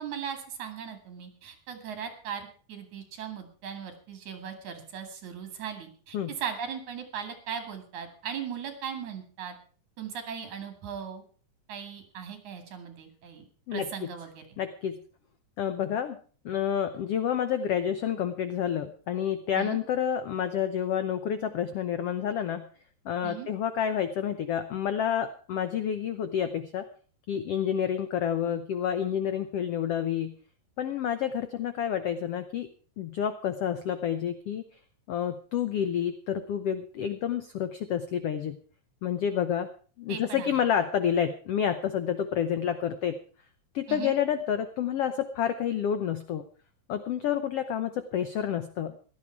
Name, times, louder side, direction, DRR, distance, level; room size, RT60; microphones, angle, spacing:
voice 1, 0.0-9.6 10.0-11.2 11.7-13.4 13.7-14.4 19.6-19.8 23.2-23.5 40.1-40.6 43.9-44.1, right 7 dB, 60° right, 7 dB, 3.6 m, -38 dB
voice 2, 14.6-15.0 15.6-16.2 16.4-22.7 23.0-26.9 27.3-30.3 30.8-32.7 33.0-34.6 35.1-38.6 39.0-39.7 40.0-43.2 43.7-46.4 46.9-48.9, left 9 dB, 85° left, 11 dB, 1.3 m, -29 dB
16.5 x 12.0 x 4.6 m, 0.41 s
omnidirectional pair, 3.9 m